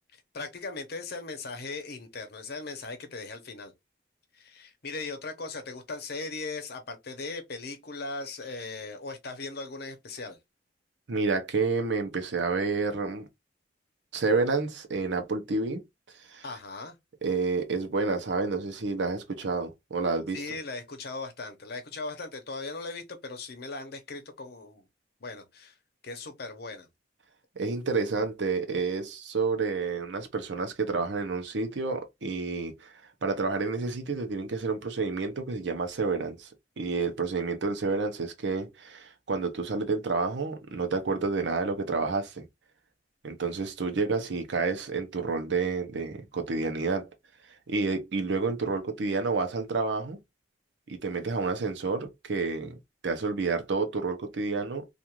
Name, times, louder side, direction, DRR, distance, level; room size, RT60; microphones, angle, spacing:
voice 1, 0.3-3.7 4.3-10.4 16.4-17.0 20.3-24.9 25.2-25.8 26.0-26.9, left 3 dB, 60° left, 0.8 m, -38 dB
voice 2, 11.1-13.3 14.1-15.8 16.3-16.4 17.2-20.4 27.6-32.9 33.2-36.5 36.8-42.5 43.2-47.1 47.7-50.2 50.9-52.8 53.0-54.9, right 4 dB, 75° right, 0.7 m, -29 dB
2.4 x 2.4 x 2.9 m
head